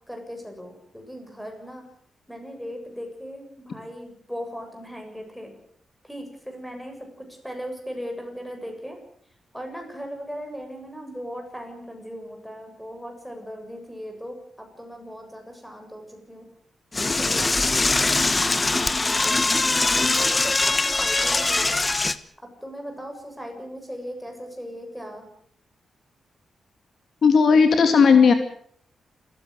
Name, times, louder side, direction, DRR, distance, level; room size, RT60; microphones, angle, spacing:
voice 1, 0.0-1.8 2.3-5.5 6.0-9.0 9.5-16.5 17.0-17.4 17.8-18.2 18.8-19.6 19.9-21.8 22.4-25.3, equal, ahead, 4 dB, 7.3 m, -38 dB
Door / Toilet flush, 16.9-22.2, left 3 dB, 20° left, 1.1 m, -22 dB
voice 2, 27.2-28.3, left 5 dB, 60° left, 7 dB, 2.6 m, -15 dB
28.0 x 15.0 x 8.1 m, 0.63 s
wide cardioid pair, 125°, 0 cm